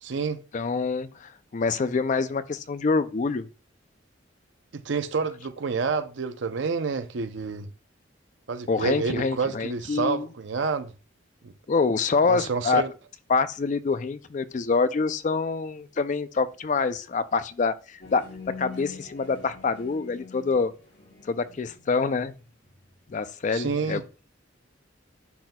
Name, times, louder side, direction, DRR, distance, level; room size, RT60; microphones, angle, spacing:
voice 1, 0.0-0.4 4.7-7.7 8.5-10.9 11.4-11.5 12.3-12.9 23.5-24.0, right 5 dB, 70° right, 0.6 m, -28 dB
voice 2, 0.5-3.5 8.7-10.3 11.7-12.8 13.3-17.7 18.1-20.7 21.3-22.3 23.1-24.0, left 4 dB, 40° left, 0.4 m, -26 dB
sound 1, 18.0-22.9, left 5 dB, 65° left, 3.7 m, -44 dB
10.0 x 4.2 x 2.2 m
head